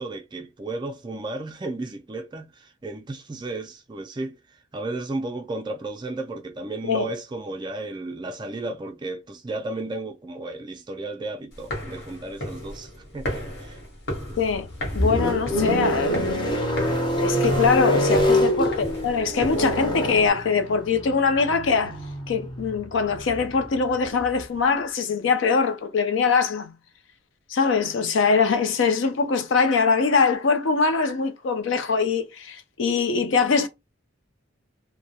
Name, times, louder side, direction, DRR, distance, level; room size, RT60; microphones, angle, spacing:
voice 1, 0.0-13.8 14.3-14.4 18.6-18.7, right 2 dB, 25° right, 0.3 m, -34 dB
sound 1, 11.5-20.3, equal, 55° left, 1.0 m, -35 dB
sound 2, 14.2-24.4, equal, 25° left, 0.6 m, -26 dB
voice 2, 14.4-14.7 14.9-16.7 17.2-22.0 22.3-26.7 27.5-33.7, left 5 dB, 75° left, 0.5 m, -22 dB
2.2 x 2.1 x 2.7 m
head